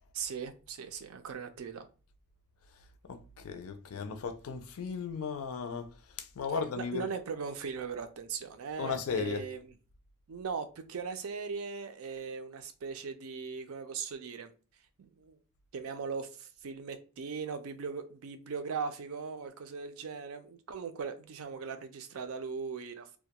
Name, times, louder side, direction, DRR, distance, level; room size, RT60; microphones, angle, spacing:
voice 1, 0.1-1.9 6.8-9.7 10.3-14.5 15.0-15.4 15.7-23.1, right 5 dB, 75° right, 0.4 m, -39 dB
voice 2, 3.1-5.9 6.2-7.1 8.8-9.4, left 5 dB, 75° left, 0.4 m, -36 dB
2.3 x 2.1 x 2.8 m
head